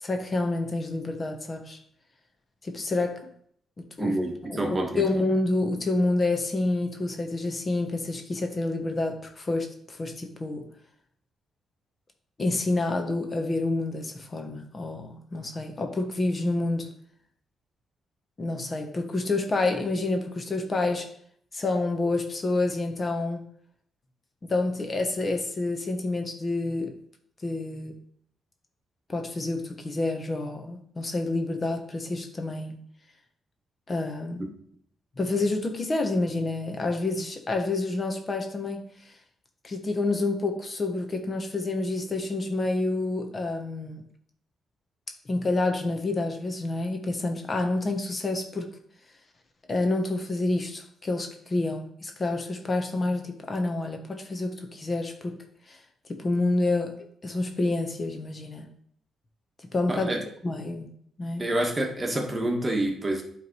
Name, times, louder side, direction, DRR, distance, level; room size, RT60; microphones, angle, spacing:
voice 1, 0.0-1.8 2.6-3.2 4.0-4.1 4.5-4.6 4.9-10.7 12.4-16.9 18.4-21.1 21.5-23.4 24.5-26.9 27.4-27.9 29.1-32.8 33.9-34.5 35.2-38.8 39.6-44.0 45.2-48.7 49.7-55.4 55.7-55.8 56.1-56.9 57.2-58.7 59.7-60.1 60.4-60.9 61.2-61.4, left 2 dB, 35° left, 4 dB, 1.4 m, -28 dB
voice 2, 4.0-5.1 34.4-34.5 59.9-60.2 61.4-63.2, right 1 dB, 25° right, 1 dB, 1.6 m, -27 dB
9.4 x 3.7 x 4.7 m, 0.65 s
cardioid pair, 70°, 0 cm